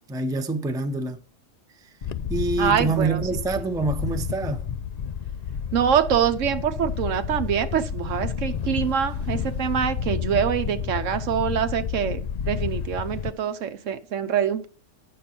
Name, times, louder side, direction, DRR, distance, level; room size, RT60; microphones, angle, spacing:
voice 1, 0.1-1.2 2.3-4.7, right 3 dB, 5° right, 0.5 m, -26 dB
Wind, 2.0-13.3, left 7 dB, 70° left, 0.4 m, -30 dB
voice 2, 2.6-3.2 5.7-14.7, right 8 dB, 70° right, 1.1 m, -25 dB
9.4 x 6.8 x 4.4 m
omnidirectional pair, 1.4 m